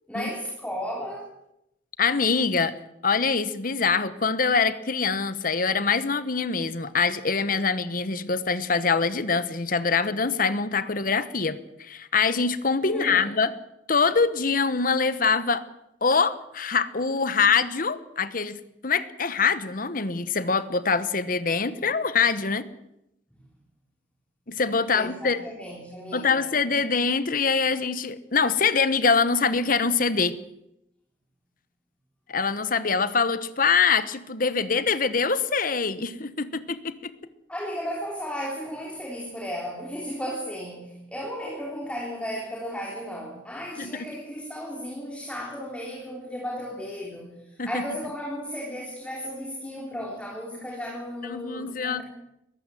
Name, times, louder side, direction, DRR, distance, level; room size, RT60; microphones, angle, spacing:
voice 1, 0.1-1.3 12.9-13.3 23.3-23.4 24.9-26.6 37.5-52.0, equal, 5° left, -2 dB, 3.6 m, -35 dB
voice 2, 2.0-2.8 3.0-13.5 13.9-15.6 16.0-22.7 24.5-25.4 26.1-30.4 32.3-37.1 43.8-44.1 47.6-47.8 51.3-52.0, left 5 dB, 50° left, 14 dB, 1.2 m, -24 dB
22.5 x 15.0 x 7.7 m, 0.84 s
head